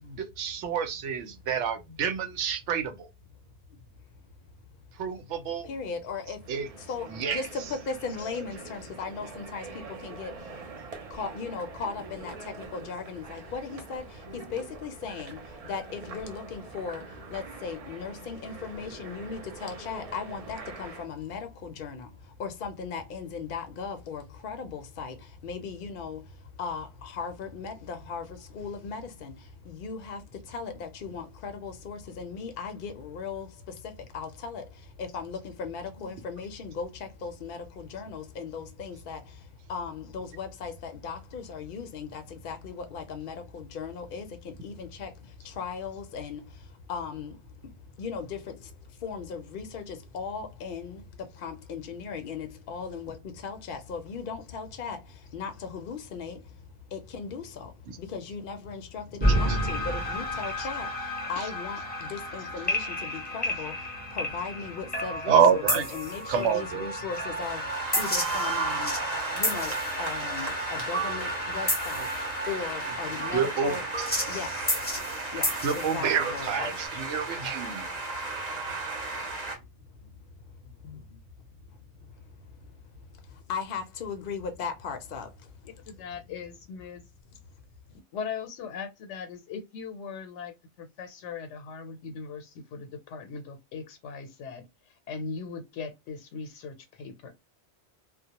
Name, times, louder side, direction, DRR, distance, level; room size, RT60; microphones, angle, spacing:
voice 1, 0.0-3.1 5.0-5.7 6.5-6.7 7.1-7.4 57.9-58.0 59.5-59.6 61.4-61.5 65.3-65.9 66.3-66.9 73.3-73.7 75.6-77.9, right 7 dB, 85° right, 0.9 m, -27 dB
voice 2, 5.6-10.6 11.1-65.6 65.9-73.9 74.2-76.7 77.8-78.8 79.2-80.1 80.4-81.2 81.7-86.3, left 5 dB, 60° left, 0.6 m, -38 dB
sound 1, 6.4-21.1, right 4 dB, 60° right, 0.4 m, -44 dB
sound 2, 59.2-76.9, equal, 10° left, 0.5 m, -31 dB
sound 3, 67.1-79.6, right 3 dB, 40° right, 0.9 m, -35 dB
voice 3, 85.9-87.0 88.1-94.6 95.1-97.3, left 5 dB, 85° left, 0.9 m, -39 dB
2.2 x 2.0 x 2.8 m
omnidirectional pair, 1.2 m